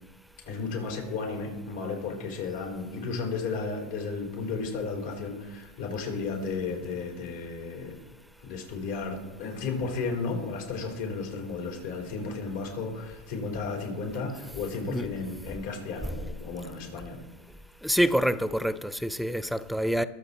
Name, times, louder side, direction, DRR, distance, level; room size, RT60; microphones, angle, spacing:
voice 1, 0.4-8.0 8.4-17.2, left 4 dB, 75° left, 4.3 m, -34 dB
voice 2, 17.8-20.0, equal, ahead, 0.6 m, -26 dB
21.5 x 7.9 x 4.2 m
supercardioid pair, 115°, 0 cm